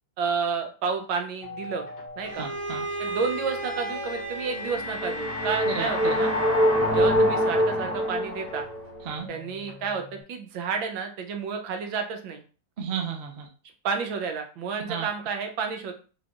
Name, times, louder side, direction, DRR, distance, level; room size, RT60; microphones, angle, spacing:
voice 1, 0.2-1.9 2.2-2.5 3.0-6.3 6.9-8.7 9.3-12.4 13.8-15.9, right 5 dB, 80° right, 5 dB, 1.6 m, -30 dB
sound 1, 1.4-10.2, left 3 dB, 50° left, 1.3 m, -43 dB
Bowed string instrument, 2.2-7.0, right 1 dB, 10° left, 1.8 m, -35 dB
voice 2, 2.4-2.8 5.7-6.2 9.0-9.3 12.8-13.5 14.9-15.1, right 6 dB, 50° right, 2 dB, 0.7 m, -33 dB
sound 2, 4.5-8.8, equal, 10° right, 0.6 m, -24 dB
4.9 x 3.8 x 2.5 m, 0.37 s
omnidirectional pair, 2.1 m